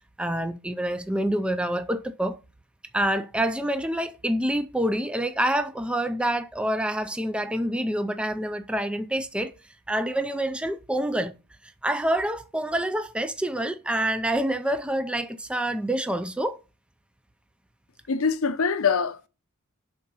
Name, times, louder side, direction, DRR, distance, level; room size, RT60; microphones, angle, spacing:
voice 1, 0.2-2.4 2.9-9.5 9.9-11.3 11.6-16.6, right 1 dB, 5° right, 0.3 m, -27 dB
voice 2, 18.1-19.3, left 5 dB, 65° left, 0.6 m, -24 dB
6.0 x 3.8 x 5.3 m
head